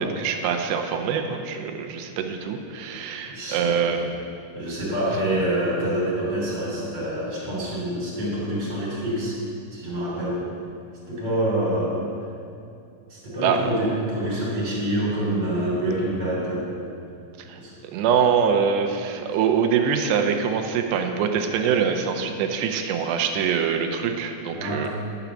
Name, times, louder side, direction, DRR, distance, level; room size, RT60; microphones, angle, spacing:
voice 1, 0.2-4.1 13.4-13.6 17.4-17.6 17.9-24.9, right 7 dB, 85° right, 5 dB, 2.8 m, -24 dB
voice 2, 3.3-3.8 4.5-9.4 9.7-10.5 11.1-12.1 13.1-16.7 17.6-17.7 19.1-19.2 24.5-24.9, right 1 dB, 25° right, -6 dB, 3.0 m, -26 dB
12.0 x 5.9 x 7.0 m, 2.5 s
omnidirectional pair, 4.9 m